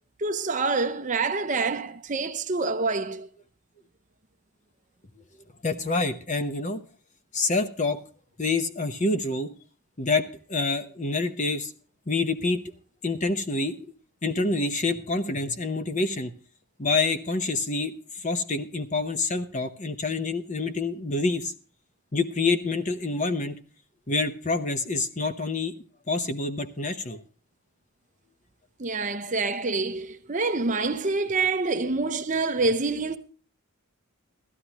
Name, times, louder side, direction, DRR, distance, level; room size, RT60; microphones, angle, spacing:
voice 1, 0.2-3.3 28.8-33.2, right 3 dB, 35° right, 0.7 m, -26 dB
voice 2, 5.6-6.8 7.3-8.0 8.4-9.5 10.0-11.7 12.1-12.6 13.0-13.8 14.2-16.3 16.8-21.5 22.1-23.6 24.1-25.8 26.1-27.2, left 3 dB, 35° left, 0.9 m, -27 dB
16.0 x 13.0 x 3.0 m
head